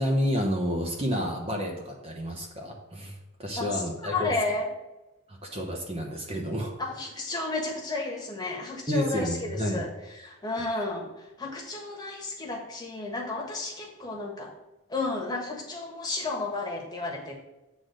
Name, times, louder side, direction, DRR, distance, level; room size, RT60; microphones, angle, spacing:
voice 1, 0.0-3.1 3.4-4.3 5.3-6.7 8.9-9.9, equal, 25° right, 0 dB, 0.9 m, -30 dB
voice 2, 3.6-4.7 6.8-14.5 14.9-17.4, left 2 dB, 20° left, -1 dB, 1.4 m, -32 dB
8.3 x 3.8 x 6.4 m, 1.0 s
head